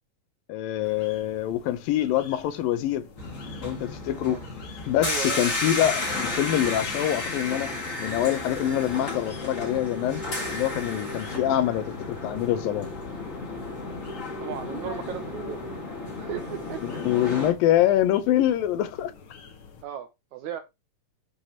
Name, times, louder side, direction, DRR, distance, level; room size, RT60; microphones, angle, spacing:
voice 1, 0.5-3.1 3.6-4.4 4.9-7.7 8.0-10.2 10.5-11.9 12.2-12.9 16.8-19.1, left 12 dB, 80° left, 2.5 m, -25 dB
sound 1, 0.8-19.8, left 6 dB, 60° left, 1.4 m, -49 dB
sound 2, 3.2-17.5, left 2 dB, 25° left, 2.1 m, -33 dB
voice 2, 5.0-5.6 14.4-15.6 16.2-16.8 19.8-20.6, right 9 dB, 75° right, 1.8 m, -36 dB
12.5 x 4.9 x 2.9 m
omnidirectional pair, 4.1 m